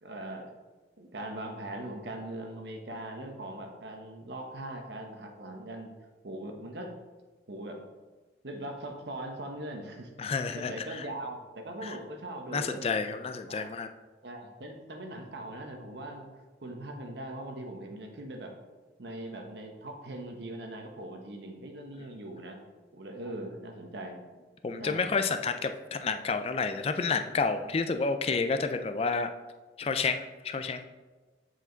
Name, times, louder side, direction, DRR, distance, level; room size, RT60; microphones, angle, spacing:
voice 1, 0.0-0.5 1.0-5.9 6.2-6.9 7.5-7.8 8.4-10.1 10.5-13.0 13.5-13.7 14.2-16.3 16.6-18.5 19.0-22.6 22.9-24.3 24.8-25.1, right 1 dB, 70° right, 3 dB, 1.0 m, -40 dB
voice 2, 10.2-11.1 11.8-12.0 12.5-13.9 24.6-29.3 29.8-30.8, left 4 dB, 35° left, 8 dB, 0.3 m, -30 dB
7.8 x 4.9 x 3.9 m, 1.3 s
head